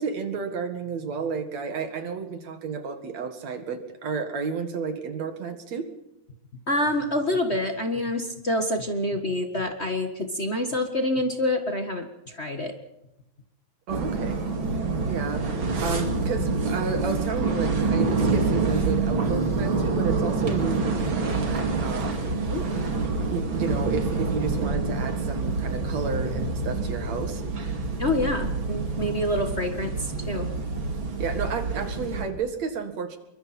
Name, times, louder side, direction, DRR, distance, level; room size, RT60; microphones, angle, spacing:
voice 1, 0.0-5.9 13.9-14.5 15.1-22.2 23.2-27.4 31.2-33.2, right 5 dB, 50° right, 7 dB, 2.8 m, -32 dB
voice 2, 6.7-12.7 22.5-22.7 28.0-30.5, left 1 dB, 55° left, 5 dB, 0.7 m, -27 dB
sound 1, 13.9-32.2, right 3 dB, 35° right, 3.0 m, -27 dB
27.5 x 23.5 x 4.4 m, 0.89 s
omnidirectional pair, 4.2 m